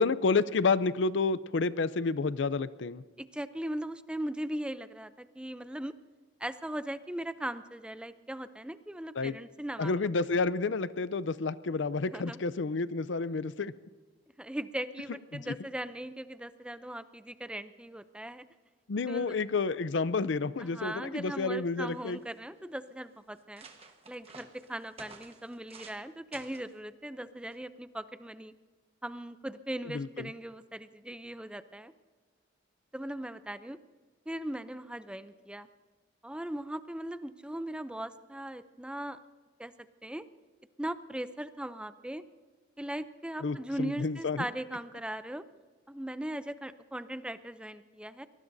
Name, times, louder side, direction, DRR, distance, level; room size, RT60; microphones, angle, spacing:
voice 1, 0.0-3.0 9.2-9.4 9.8-13.7 15.3-15.5 18.9-22.2 29.9-30.3 43.4-44.5, left 4 dB, 70° left, 16 dB, 0.5 m, -30 dB
voice 2, 3.2-6.0 6.4-10.0 12.1-12.4 14.4-18.4 19.0-19.4 20.6-23.7 24.1-28.5 29.0-31.9 32.9-33.8 34.3-35.7 36.2-39.2 39.6-40.3 40.8-42.2 42.8-45.4 45.9-48.3, right 1 dB, 5° right, 12 dB, 0.5 m, -39 dB
sound 1, 21.5-21.6 21.8-22.4 23.0-23.1 23.3-26.0 26.3-26.7 27.5-27.8, right 4 dB, 30° right, 1.3 m, -52 dB
24.0 x 19.5 x 2.7 m, 1.4 s
head